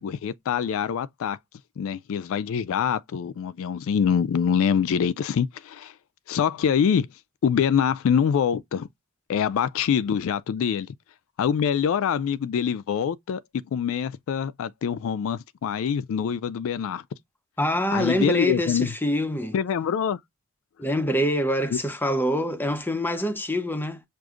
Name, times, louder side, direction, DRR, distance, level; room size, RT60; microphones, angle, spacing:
voice 1, 0.0-1.4 1.8-5.9 6.3-7.1 7.4-8.9 9.3-10.9 11.4-17.0 17.9-18.9 19.5-20.2 21.7-21.8, left 7 dB, 65° left, 0.3 m, -25 dB
voice 2, 17.6-19.5 20.8-24.0, equal, 10° left, 0.5 m, -25 dB
6.2 x 2.5 x 2.4 m
head